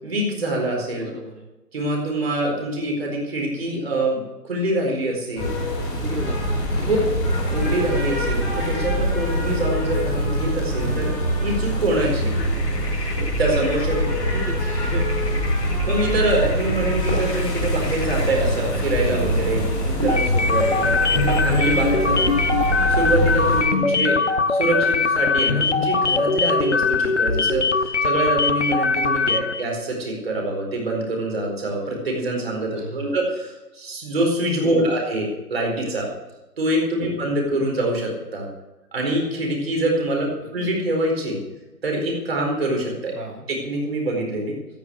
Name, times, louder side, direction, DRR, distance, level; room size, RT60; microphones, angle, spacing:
voice 1, 0.0-1.1 1.7-5.5 6.7-7.0 7.5-12.3 13.4-14.1 15.8-22.3 22.9-24.2 24.5-36.1 36.6-38.5 38.9-41.4 41.8-43.1 43.6-44.5, right 1 dB, 35° right, 0 dB, 4.6 m, -25 dB
voice 2, 1.0-1.5 6.0-7.3 14.0-15.4 21.0-21.7 29.3-29.5 32.8-33.2 34.6-34.9 37.0-37.2 40.7-40.8 43.1-43.5, right 2 dB, 70° right, 0 dB, 2.8 m, -36 dB
sound 1, 5.4-23.6, equal, 10° left, 3.0 m, -24 dB
sound 2, 11.9-21.4, left 3 dB, 75° left, 2.6 m, -38 dB
sound 3, 20.1-29.6, left 4 dB, 45° left, 1.0 m, -21 dB
15.5 x 9.3 x 6.4 m, 1.0 s
figure-of-eight pair, 165°, 49 cm